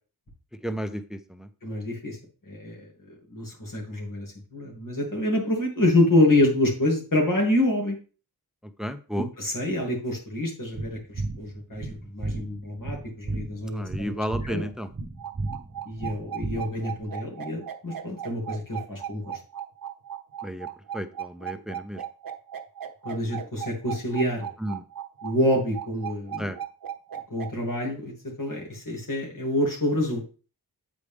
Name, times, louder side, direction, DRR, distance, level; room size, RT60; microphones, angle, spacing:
voice 1, 0.6-1.5 8.8-9.3 13.7-14.9 20.4-20.7 20.9-22.0 24.6-24.8 26.4-26.6, equal, ahead, 10 dB, 0.6 m, -32 dB
voice 2, 1.6-2.2 2.5-2.9 3.3-8.0 9.2-11.0 11.4-14.6 15.9-19.4 23.0-24.5 25.2-26.5 27.3-28.1 28.4-30.2, left 1 dB, 60° left, -1 dB, 2.7 m, -26 dB
sound 1, 10.7-17.0, right 2 dB, 40° right, 0.9 m, -34 dB
sound 2, 15.2-27.5, right 9 dB, 65° right, 0.9 m, -36 dB
8.2 x 4.9 x 3.5 m, 0.36 s
wide cardioid pair, 75°, 37 cm